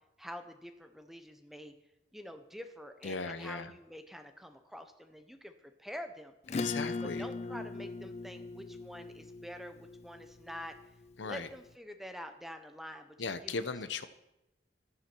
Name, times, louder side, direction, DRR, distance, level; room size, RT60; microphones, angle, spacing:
voice 1, 0.2-1.7 2.1-6.3 7.0-10.7 11.2-13.5, equal, ahead, 7 dB, 0.9 m, -47 dB
voice 2, 3.0-3.7 6.5-7.3 11.2-11.5 13.2-14.1, left 4 dB, 85° left, 11 dB, 0.8 m, -37 dB
Acoustic guitar / Strum, 6.5-11.4, left 3 dB, 35° left, 0.3 m, -40 dB
13.5 x 10.5 x 4.5 m, 0.89 s
head